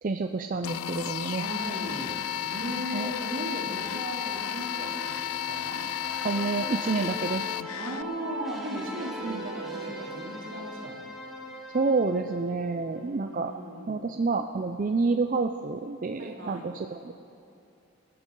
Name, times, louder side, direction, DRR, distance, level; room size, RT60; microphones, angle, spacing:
voice 1, 0.0-1.4 2.9-3.1 6.2-7.4 9.2-9.4 11.7-13.5 13.9-17.1, right 4 dB, 40° right, 6 dB, 0.4 m, -28 dB
sound 1, 0.6-8.0, left 10 dB, 85° left, 0.4 m, -33 dB
voice 2, 1.3-5.8 7.7-11.1 12.9-14.0 16.2-16.7, equal, 75° right, -2 dB, 2.8 m, -37 dB
sound 2, 1.7-13.0, left 1 dB, ahead, 2.1 m, -42 dB
26.5 x 12.5 x 3.8 m, 2.6 s
head